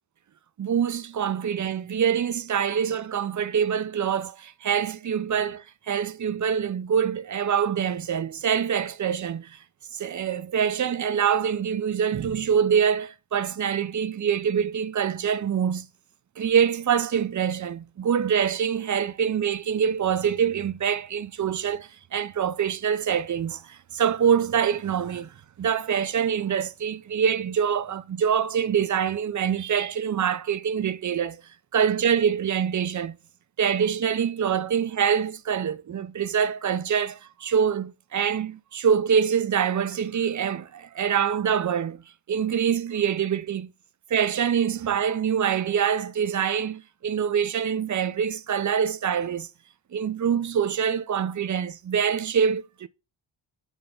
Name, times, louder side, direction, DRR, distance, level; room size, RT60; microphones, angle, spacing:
voice 1, 0.6-9.6 9.9-15.9 16.4-31.4 31.7-33.2 33.6-42.0 42.3-43.7 44.1-49.5 49.9-52.9, right 8 dB, 40° right, 0.5 m, -25 dB
8.9 x 3.4 x 3.8 m
wide cardioid pair, 160°, 47 cm